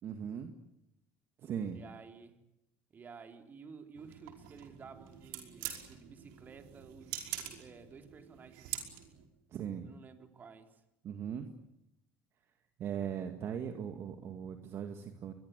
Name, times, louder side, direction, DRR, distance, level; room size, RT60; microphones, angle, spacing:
voice 1, 0.0-0.5 1.4-1.8 9.5-9.9 11.0-11.5 12.8-15.3, right 8 dB, 50° right, 6 dB, 2.2 m, -39 dB
voice 2, 1.7-2.4 2.9-9.1 9.8-10.8, right 5 dB, 35° right, 6 dB, 3.8 m, -53 dB
sound 1, 3.9-9.3, right 11 dB, 85° right, 5.1 m, -45 dB
24.5 x 22.0 x 8.3 m, 0.86 s
cardioid pair, 115°, 6 cm